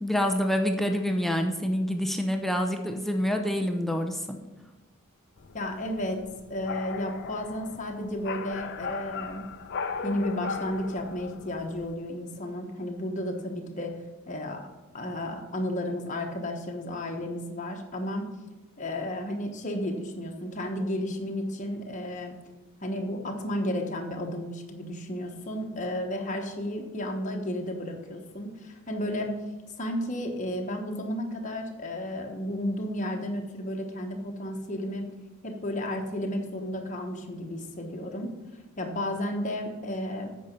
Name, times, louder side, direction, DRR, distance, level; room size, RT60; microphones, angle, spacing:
voice 1, 0.0-4.4, equal, ahead, 4 dB, 0.6 m, -27 dB
sound 1, 5.4-11.9, left 5 dB, 50° left, 0.6 m, -38 dB
voice 2, 5.5-6.2 6.5-9.5 10.0-13.9 14.3-14.7 14.9-18.3 18.8-22.3 22.8-29.4 29.8-35.1 35.4-38.4 38.8-40.3, left 1 dB, 35° left, 2 dB, 1.1 m, -32 dB
8.6 x 5.5 x 5.3 m, 1.2 s
head